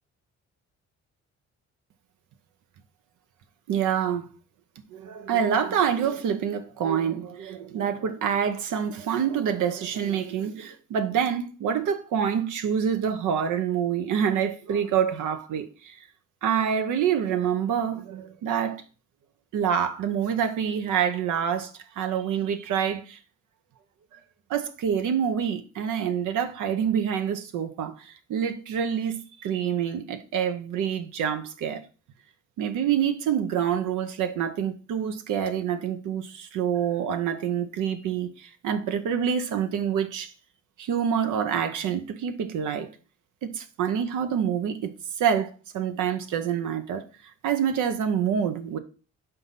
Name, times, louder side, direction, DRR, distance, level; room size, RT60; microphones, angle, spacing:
voice 1, 3.7-4.3 4.9-16.0 16.4-18.8 19.5-21.7 22.0-23.2 24.5-31.8 32.6-40.3 40.8-42.9 43.4-44.9 45.2-47.0 47.4-48.8, right 8 dB, 85° right, 0.9 m, -26 dB
5.7 x 4.1 x 5.7 m
cardioid pair, 90°, 30 cm